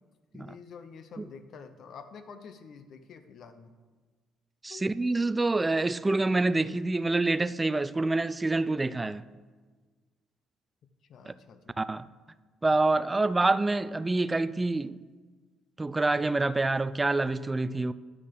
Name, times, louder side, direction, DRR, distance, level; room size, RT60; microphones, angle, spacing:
voice 1, 0.3-3.7 4.7-4.8 11.1-11.8, left 6 dB, 60° left, 0.9 m, -48 dB
voice 2, 4.6-9.2 11.3-11.4 11.8-12.1 12.6-15.0 15.8-17.9, right 2 dB, 15° right, 0.4 m, -27 dB
11.0 x 6.1 x 5.9 m
cardioid pair, 95°, 0 cm